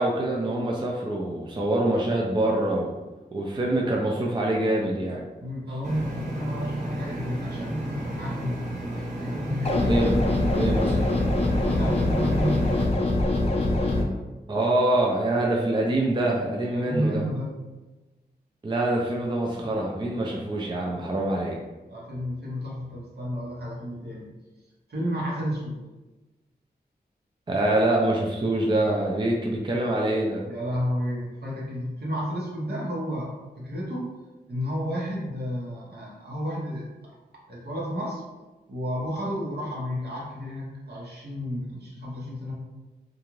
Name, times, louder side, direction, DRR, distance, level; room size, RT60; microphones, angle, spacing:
voice 1, 0.0-2.9 3.3-5.2 9.9-10.1 10.5-11.1 14.5-17.2 18.6-21.6 27.5-30.4, right 1 dB, 25° right, -1 dB, 0.4 m, -25 dB
voice 2, 5.4-8.7 9.2-9.9 11.6-12.7 16.7-17.5 21.9-24.3 24.9-25.8 30.4-34.1 34.5-36.9 37.5-38.2 38.7-42.5, equal, 70° right, -5 dB, 1.0 m, -31 dB
sound 1, 5.8-12.9, right 1 dB, 45° right, 0.8 m, -33 dB
sound 2, 9.6-14.0, left 2 dB, 35° left, 0.5 m, -23 dB
2.5 x 2.4 x 3.0 m, 1.1 s
cardioid pair, 50°, 18 cm